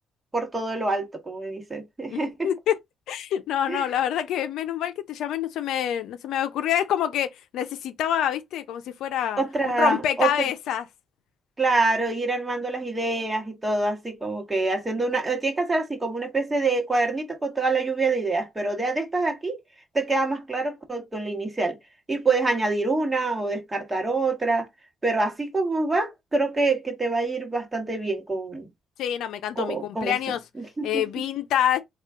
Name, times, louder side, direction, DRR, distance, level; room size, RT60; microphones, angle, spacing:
voice 1, 0.3-2.5 3.7-3.8 9.4-10.3 11.6-19.6 19.9-21.8 22.1-24.7 25.0-28.7 29.6-30.2 30.6-31.0, right 3 dB, 20° right, 1.2 m, -26 dB
voice 2, 2.1-2.8 3.1-9.4 9.8-10.9 29.0-30.4 30.8-31.8, left 10 dB, 80° left, 0.5 m, -26 dB
3.7 x 2.4 x 3.5 m
cardioid pair, 90°, 0 cm